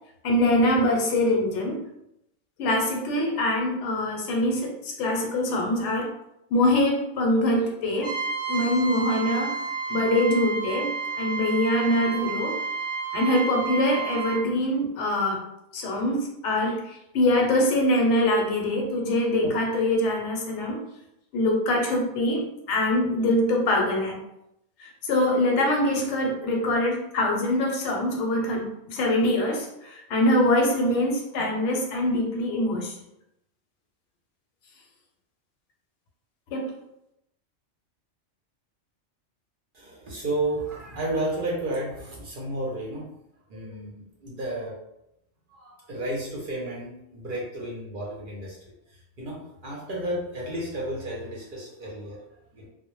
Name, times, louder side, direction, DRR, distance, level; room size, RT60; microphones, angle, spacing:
voice 1, 0.2-1.8 2.6-6.1 6.5-8.2 8.5-9.6 9.9-12.5 13.1-15.4 15.7-20.8 21.3-24.2 24.8-32.9 36.5-36.7, left 1 dB, 75° left, 0 dB, 0.9 m, -24 dB
Trumpet, 8.0-14.4, right 5 dB, 20° right, 0.7 m, -31 dB
voice 2, 39.7-43.1 43.5-44.8 45.5-52.7, right 1 dB, 55° right, -4 dB, 0.7 m, -32 dB
2.0 x 2.0 x 3.0 m, 0.82 s
omnidirectional pair, 1.2 m